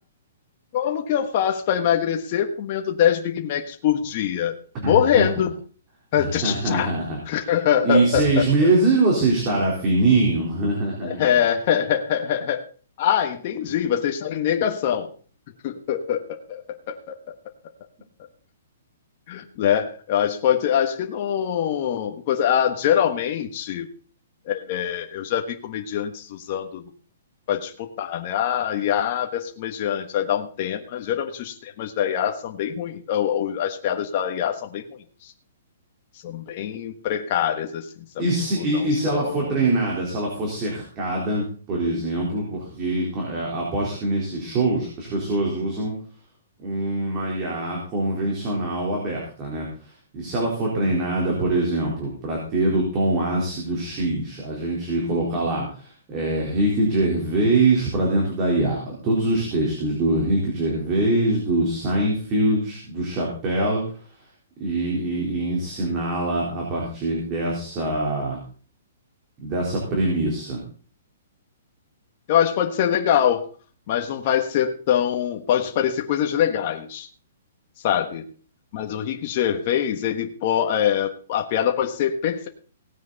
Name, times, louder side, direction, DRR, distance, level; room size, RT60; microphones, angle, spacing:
voice 1, 0.7-4.6 4.8-5.5 6.1-6.9 7.3-8.7 11.0-12.6 13.0-15.1 15.6-17.0 19.3-23.9 24.5-26.8 27.5-35.3 36.2-37.9 38.6-39.6 50.8-51.2 72.3-73.5 73.9-77.1 77.8-78.3 78.7-82.5, left 9 dB, 35° left, 4 dB, 1.4 m, -24 dB
voice 2, 4.8-5.3 6.2-7.2 7.8-11.3 38.2-45.9 46.6-63.8 64.6-68.4 69.4-70.6, right 2 dB, 25° right, -2 dB, 3.9 m, -23 dB
17.5 x 9.3 x 4.1 m, 0.41 s
hypercardioid pair, 165°, 0 cm